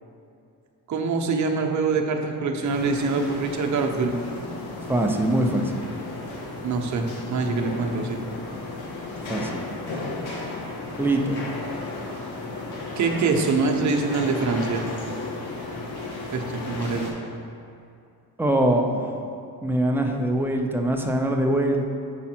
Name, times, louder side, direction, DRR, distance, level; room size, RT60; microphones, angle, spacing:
voice 1, 0.9-4.2 6.6-8.2 13.0-14.9 16.3-17.1, right 4 dB, 45° right, 2 dB, 0.9 m, -24 dB
sound 1, 2.6-17.1, left 2 dB, 80° left, 1.5 m, -34 dB
voice 2, 4.9-5.8 9.2-9.6 11.0-11.4 18.4-19.2 19.6-21.8, right 1 dB, 5° right, 2 dB, 0.6 m, -23 dB
7.1 x 5.4 x 4.4 m, 2.5 s
cardioid pair, 100°, 40 cm